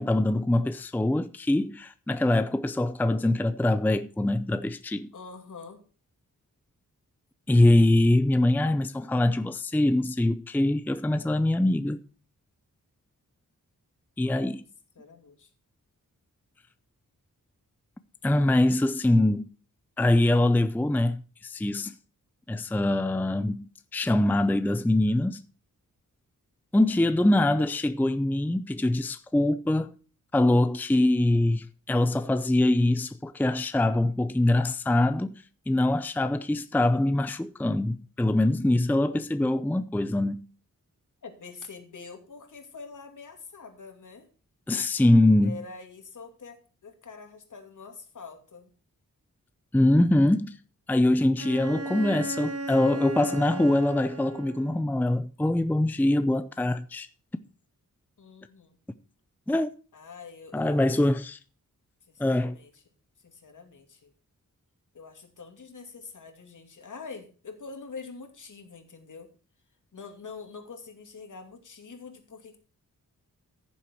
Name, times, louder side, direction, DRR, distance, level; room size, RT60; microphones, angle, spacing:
voice 1, 0.0-5.1 7.5-12.0 14.2-14.6 18.2-19.5 20.0-21.9 22.5-25.4 26.7-29.9 30.3-40.4 44.7-45.6 49.7-50.6 50.9-57.1 59.5-59.7 60.5-61.4 62.2-62.6, left 1 dB, 5° left, 0.5 m, -23 dB
voice 2, 5.1-5.8 14.2-14.6 15.0-15.5 41.2-44.3 45.4-46.6 46.8-48.7 58.2-58.8 59.9-60.9 62.1-62.8 63.2-64.1 64.9-69.3 69.9-72.6, left 4 dB, 65° left, 2.6 m, -45 dB
Bowed string instrument, 51.4-54.9, right 2 dB, 45° right, 1.1 m, -35 dB
15.0 x 7.3 x 4.5 m
wide cardioid pair, 130°, 33 cm